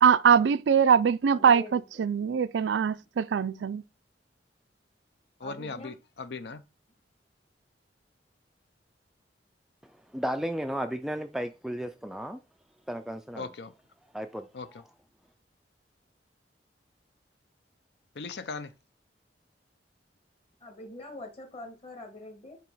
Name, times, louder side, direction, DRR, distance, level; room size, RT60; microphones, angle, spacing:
voice 1, 0.0-3.8, right 7 dB, 85° right, 0.4 m, -22 dB
voice 2, 1.3-2.0 5.4-5.9 20.6-22.6, left 2 dB, 35° left, 1.7 m, -44 dB
voice 3, 5.4-6.6 13.4-13.7 14.5-14.8 18.1-18.7, left 4 dB, 65° left, 0.6 m, -38 dB
voice 4, 10.1-12.4 12.9-13.5 14.1-14.5, equal, ahead, 0.3 m, -33 dB
7.4 x 2.9 x 5.5 m
head